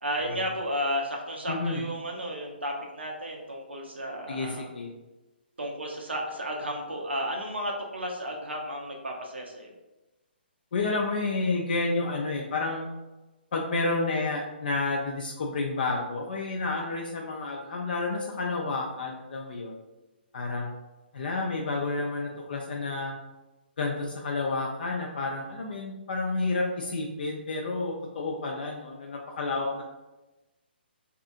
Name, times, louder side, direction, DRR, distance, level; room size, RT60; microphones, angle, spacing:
voice 1, 0.0-4.7 5.6-9.7, equal, 85° right, 1 dB, 0.5 m, -33 dB
voice 2, 1.5-1.9 4.3-4.9 10.7-12.9 13.5-19.8 20.3-20.7 21.1-23.1 23.8-29.8, left 3 dB, 55° left, 0 dB, 0.4 m, -30 dB
2.6 x 2.4 x 2.5 m, 1.1 s
figure-of-eight pair, 135°, 6 cm